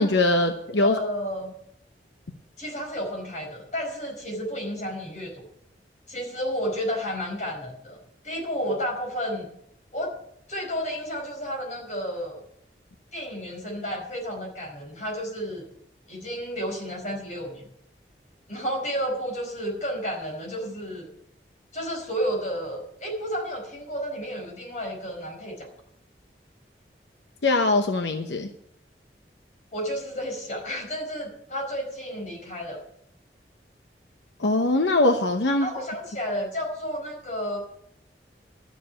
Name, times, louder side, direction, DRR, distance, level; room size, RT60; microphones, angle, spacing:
voice 1, 0.0-1.0 27.4-28.5 34.4-35.7, left 2 dB, 90° left, 6 dB, 0.9 m, -22 dB
voice 2, 0.8-1.5 2.6-5.4 6.1-8.0 8.2-9.5 9.9-10.2 10.5-12.4 13.1-15.6 16.1-17.7 18.5-21.1 21.7-25.7 29.7-32.8 35.6-37.6, equal, 40° left, 0 dB, 4.9 m, -31 dB
12.5 x 7.4 x 8.8 m, 0.72 s
head